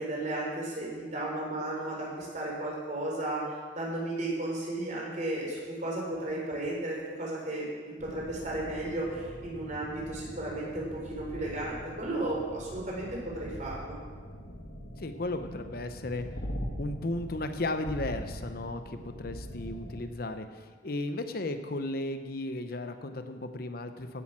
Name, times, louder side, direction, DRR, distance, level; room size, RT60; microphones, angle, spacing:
voice 1, 0.0-3.4 3.7-13.1 13.3-14.0, right 1 dB, 40° right, -4 dB, 4.7 m, -34 dB
sound 1, 8.0-20.1, equal, 85° left, 1.8 m, -42 dB
voice 2, 15.0-16.3 16.8-24.2, left 2 dB, 55° left, 8 dB, 0.8 m, -35 dB
16.0 x 8.8 x 6.1 m, 1.5 s
head